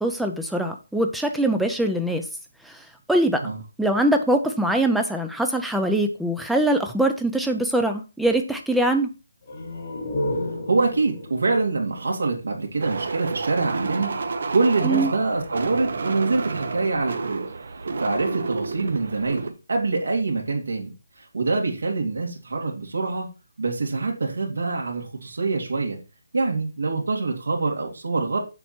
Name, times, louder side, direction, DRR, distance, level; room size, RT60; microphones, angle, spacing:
voice 1, 0.0-2.2 2.7-2.8 3.1-3.4 3.8-9.1 14.8-15.1, right 1 dB, ahead, 4 dB, 0.4 m, -22 dB
sound 1, 9.4-13.0, left 1 dB, 30° left, 1.3 m, -32 dB
voice 2, 10.7-17.4 18.0-20.9 21.3-23.3 23.6-26.0 26.3-28.4, right 3 dB, 70° right, 1 dB, 2.3 m, -25 dB
sound 2, 12.8-19.5, right 4 dB, 45° right, 0.8 m, -30 dB
7.0 x 4.7 x 4.4 m, 0.31 s
hypercardioid pair, 180°, 0 cm